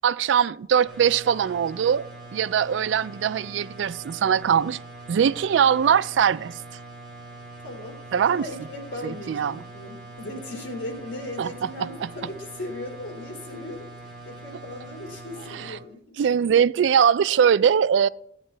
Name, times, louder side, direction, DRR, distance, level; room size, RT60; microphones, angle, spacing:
voice 1, 0.0-4.8 5.1-6.6 8.1-8.4 9.0-9.6 11.4-12.1 16.2-18.1, right 8 dB, 85° right, 0.3 m, -21 dB
sound 1, 0.8-15.7, right 2 dB, 5° left, 3.9 m, -43 dB
voice 2, 7.6-13.9 14.2-16.2, left 1 dB, 85° left, 3.0 m, -37 dB
15.0 x 8.8 x 3.3 m
head